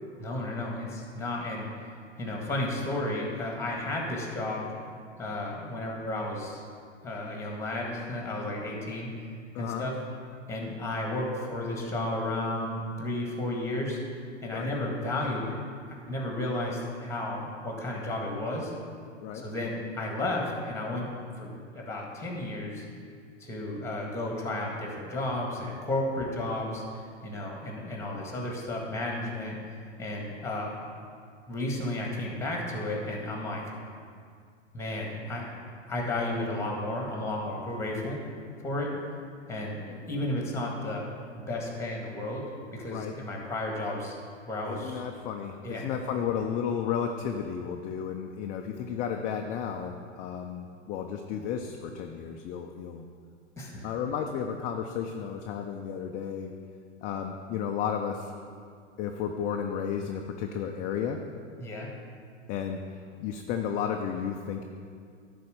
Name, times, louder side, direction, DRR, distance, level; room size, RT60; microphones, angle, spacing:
voice 1, 0.2-1.7 2.2-4.7 5.2-6.6 7.0-9.1 9.6-10.0 10.5-14.0 14.4-15.6 16.1-18.7 19.4-21.1 21.4-21.5 21.7-22.9 23.4-29.6 30.0-30.7 31.5-33.6 34.7-35.5 35.9-38.2 38.6-38.9 39.5-41.0 41.4-42.5 42.7-44.2 44.5-45.0 45.6-45.9 53.6-53.9 61.6-61.9, left 1 dB, 5° left, -1 dB, 1.8 m, -33 dB
voice 2, 9.5-9.9 14.5-14.7 19.2-19.4 42.9-43.1 44.7-53.1 53.8-56.5 57.0-58.3 59.0-61.2 62.5-62.8 63.2-64.6, left 7 dB, 25° left, 3 dB, 0.4 m, -33 dB
10.5 x 4.2 x 6.5 m, 2.2 s
hypercardioid pair, 105°, 37 cm